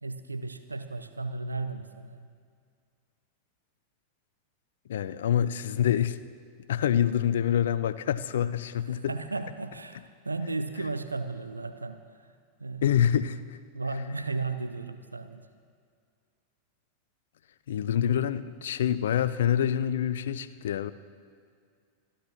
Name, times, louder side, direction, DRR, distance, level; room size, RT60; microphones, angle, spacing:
voice 1, 0.0-2.3 8.9-12.9 13.7-15.5, right 3 dB, 80° right, 10 dB, 0.6 m, -35 dB
voice 2, 4.9-6.2 6.7-9.1 12.8-13.6 17.7-20.9, left 10 dB, 60° left, 15 dB, 0.5 m, -26 dB
27.5 x 11.5 x 3.1 m, 2.2 s
figure-of-eight pair, 90°, 0 cm